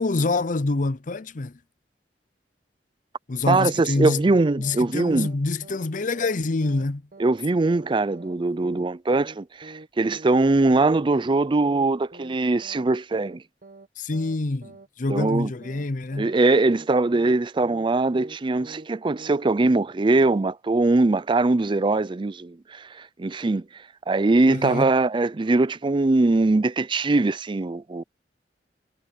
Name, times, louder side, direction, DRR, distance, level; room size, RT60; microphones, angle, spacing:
voice 1, 0.0-1.5 3.3-4.2 4.6-7.0 14.0-16.3 24.5-24.9, left 3 dB, 50° left, 0.6 m, -26 dB
voice 2, 3.5-5.3 7.2-13.4 15.1-15.5 16.2-23.6 24.1-28.0, right 2 dB, 30° right, 0.4 m, -21 dB
sound 1, 4.6-4.9 5.1-5.4 5.6-5.9 6.1-6.4 6.6-6.9 7.1-7.4 7.6-7.9 8.1-8.4 8.6-8.9 9.1-9.4 9.6-9.9 10.1-10.4 10.6-10.9 11.1-11.4 11.6-11.9 12.1-12.4 12.6-12.9 13.1-13.4 13.6-13.9 14.1-14.4 14.6-14.9 15.1-15.4 15.6-16.4 16.6-16.9 17.1-17.4 17.6-17.9 18.1-18.4 18.6-18.9 19.1-19.4 19.6-19.9 20.1-20.4, right 2 dB, 50° right, 1.5 m, -45 dB
head